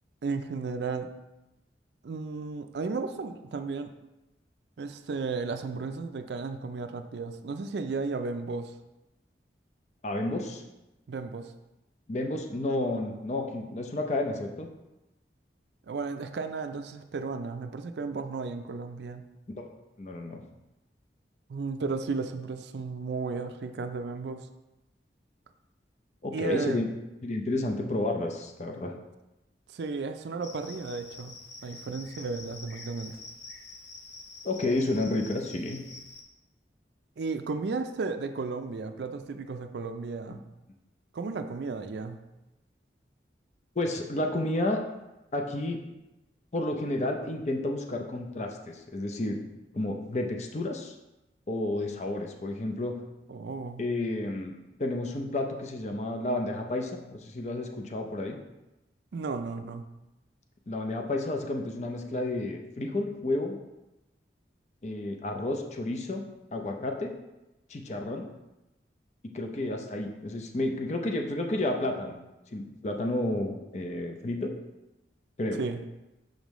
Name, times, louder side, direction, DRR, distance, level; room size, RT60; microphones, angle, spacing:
voice 1, 0.2-1.1 2.0-3.9 4.8-8.7 11.1-11.5 15.9-19.2 21.5-24.5 26.3-26.8 29.7-31.4 31.6-33.2 37.2-40.4 41.1-42.2 53.3-53.8 59.1-59.8 75.6-75.8, right 4 dB, 75° right, 8 dB, 0.4 m, -34 dB
voice 2, 10.0-10.6 12.1-14.7 19.6-19.7 20.0-20.4 26.2-26.9 27.2-28.9 34.4-35.8 40.3-40.4 43.8-44.8 45.3-45.8 46.5-49.4 49.7-50.9 51.5-53.0 53.8-54.5 54.8-58.4 60.7-63.6 64.8-66.2 66.5-67.1 67.7-68.3 69.3-72.2 72.5-74.5 75.4-75.6, left 2 dB, 40° left, 3 dB, 0.5 m, -31 dB
Cricket, 30.4-36.2, left 3 dB, 80° left, 0.9 m, -47 dB
6.4 x 5.2 x 3.1 m, 0.98 s
head